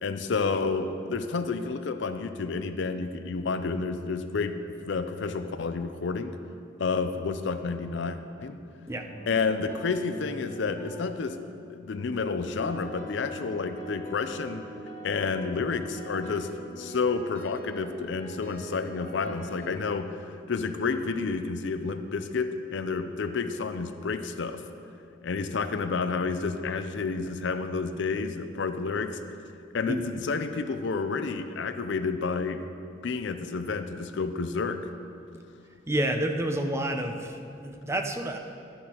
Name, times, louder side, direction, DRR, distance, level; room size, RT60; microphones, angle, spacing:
voice 1, 0.0-6.4 6.8-8.6 9.3-11.4 11.7-14.6 15.0-16.5 16.8-24.6 25.2-29.2 29.7-32.6 33.0-34.8, left 4 dB, 65° left, 9 dB, 0.5 m, -30 dB
sound 1, 8.9-11.2 12.1-19.8, right 1 dB, 35° left, 1.2 m, -43 dB
voice 2, 35.9-38.4, right 1 dB, 15° right, 5 dB, 0.5 m, -29 dB
12.0 x 10.0 x 3.0 m, 2.5 s
head